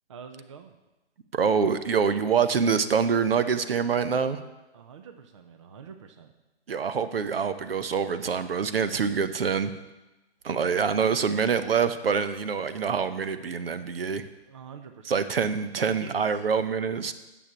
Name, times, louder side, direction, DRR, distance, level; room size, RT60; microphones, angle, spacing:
voice 1, 0.1-0.8 4.7-6.3 14.5-15.2 15.8-16.5, right 6 dB, 25° right, 6 dB, 0.6 m, -45 dB
voice 2, 1.3-4.4 6.7-9.7 10.4-14.2 15.1-17.1, right 6 dB, 60° right, 12 dB, 0.8 m, -25 dB
9.5 x 7.0 x 7.1 m, 1.0 s
figure-of-eight pair, 145°, 34 cm